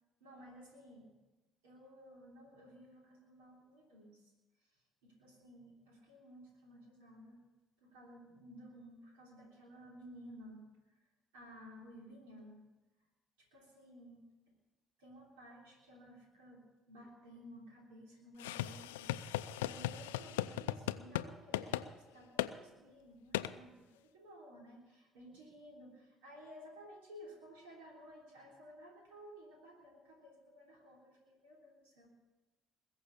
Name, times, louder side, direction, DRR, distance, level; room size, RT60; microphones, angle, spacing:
voice 1, 0.2-1.1 1.6-4.3 4.6-7.4 7.8-11.0 11.3-12.6 13.4-14.5 15.0-32.1, equal, 85° right, -1 dB, 3.2 m, -56 dB
sound 1, 18.4-21.3 21.5-21.9 22.4-22.5 23.3-23.5, left 14 dB, 85° left, 0.4 m, -37 dB
21.0 x 7.2 x 8.4 m, 1.1 s
hypercardioid pair, 55°, 0 cm